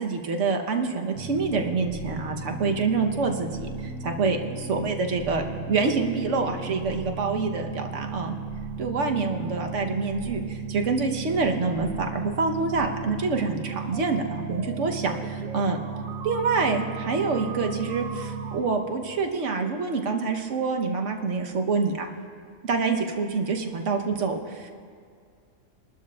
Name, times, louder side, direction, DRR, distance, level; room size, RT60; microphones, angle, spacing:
voice 1, 0.0-8.3 8.8-15.8 16.2-22.1 22.6-24.7, right 4 dB, 65° right, 3 dB, 1.3 m, -26 dB
sound 1, 1.1-18.6, right 4 dB, 85° right, 1.3 m, -35 dB
23.0 x 12.0 x 2.3 m, 2.1 s
omnidirectional pair, 1.4 m